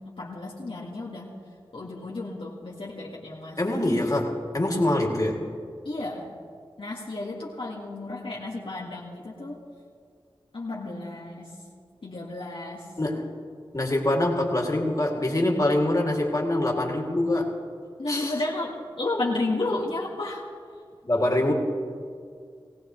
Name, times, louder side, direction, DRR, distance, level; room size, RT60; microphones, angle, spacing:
voice 1, 0.0-1.3 1.7-3.7 5.9-6.3 6.8-9.6 10.5-11.6 12.0-12.9 18.0-20.4, left 2 dB, 70° left, -4 dB, 1.8 m, -32 dB
voice 2, 3.6-5.4 13.0-13.3 13.7-17.6 18.1-18.4 21.0-21.5, left 1 dB, 40° left, -1 dB, 2.5 m, -24 dB
20.0 x 17.5 x 3.2 m, 2.1 s
wide cardioid pair, 55°, 9 cm